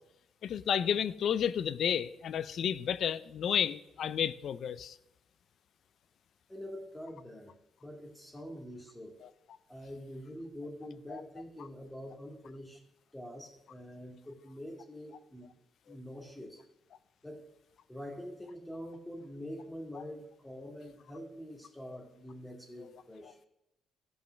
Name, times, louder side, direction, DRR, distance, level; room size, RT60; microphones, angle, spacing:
voice 1, 0.4-5.0 9.2-9.3 11.1-11.2 22.8-22.9, left 8 dB, 65° left, 16 dB, 0.5 m, -31 dB
voice 2, 6.5-7.5 7.8-9.2 9.7-12.8 13.1-15.5 15.9-16.6 17.2-17.4 17.9-23.4, equal, 10° left, 0 dB, 2.2 m, -45 dB
13.5 x 5.5 x 6.4 m, 0.84 s
cardioid pair, 90°, 0 cm